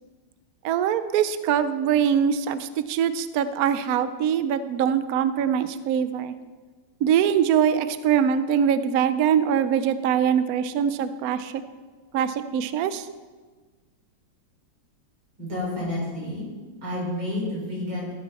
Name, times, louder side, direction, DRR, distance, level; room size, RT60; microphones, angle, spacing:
voice 1, 0.6-6.3 7.0-11.5 12.1-13.1, right 8 dB, 70° right, 12 dB, 0.9 m, -23 dB
voice 2, 15.4-16.5 16.8-18.1, left 1 dB, 90° right, -5 dB, 5.7 m, -30 dB
15.0 x 9.2 x 4.1 m, 1.4 s
omnidirectional pair, 2.1 m